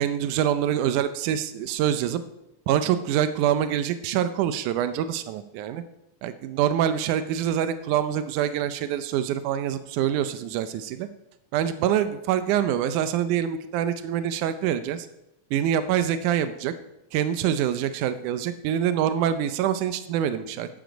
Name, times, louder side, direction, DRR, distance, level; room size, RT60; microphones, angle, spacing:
voice 1, 0.0-2.2 2.7-5.8 6.2-11.1 11.5-15.1 15.5-16.7 17.1-20.7, right 10 dB, 85° right, 11 dB, 2.2 m, -25 dB
13.5 x 10.5 x 5.1 m, 0.89 s
omnidirectional pair, 3.5 m